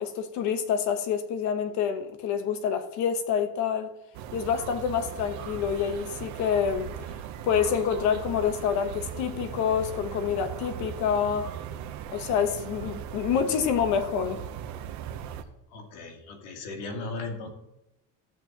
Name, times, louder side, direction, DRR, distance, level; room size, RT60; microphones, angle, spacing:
voice 1, 0.0-3.9 4.3-6.9 7.4-11.5 12.1-14.4, left 7 dB, 55° left, 1.2 m, -27 dB
sound 1, 4.1-15.4, right 9 dB, 50° right, 0.9 m, -38 dB
voice 2, 15.7-17.5, left 3 dB, 85° left, 2.4 m, -37 dB
13.5 x 8.0 x 3.0 m
cardioid pair, 175°, 35 cm